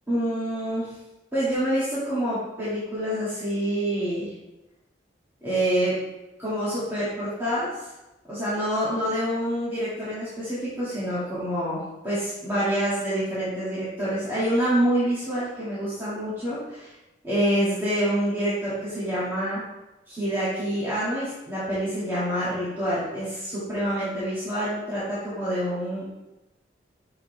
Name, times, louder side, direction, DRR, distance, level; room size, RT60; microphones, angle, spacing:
voice 1, 0.1-0.9 1.3-4.3 5.4-5.9 6.4-7.7 8.3-16.9 17.2-19.6 20.1-26.0, equal, 15° right, -12 dB, 2.1 m, -27 dB
6.9 x 5.0 x 3.3 m, 1.0 s
head